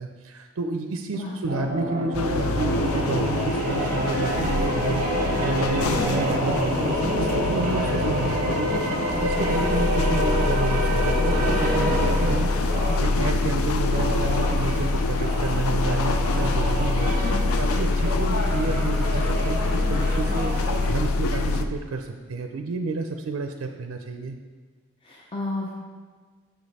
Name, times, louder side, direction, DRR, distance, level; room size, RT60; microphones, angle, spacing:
voice 1, 0.0-12.7 13.0-17.1 17.6-24.4, right 3 dB, 75° right, 5 dB, 0.4 m, -30 dB
voice 2, 1.1-1.7 6.0-6.3 17.2-17.5 25.0-25.7, left 2 dB, 25° left, -4 dB, 0.6 m, -32 dB
sound 1, 1.5-13.1 13.8-20.9, equal, 40° right, 0.8 m, -28 dB
sound 2, 2.1-21.6, left 3 dB, 90° left, 0.4 m, -25 dB
6.3 x 5.0 x 4.1 m, 1.5 s
head